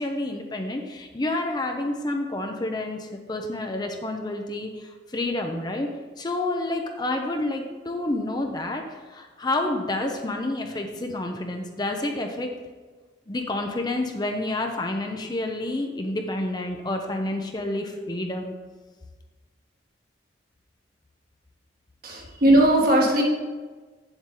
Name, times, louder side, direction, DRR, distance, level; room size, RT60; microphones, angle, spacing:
voice 1, 0.0-5.9 6.2-12.5 13.3-18.5, left 2 dB, 25° left, 4 dB, 0.6 m, -29 dB
voice 2, 22.0-23.2, right 1 dB, 55° right, -1 dB, 1.6 m, -18 dB
8.0 x 7.2 x 3.8 m, 1.4 s
head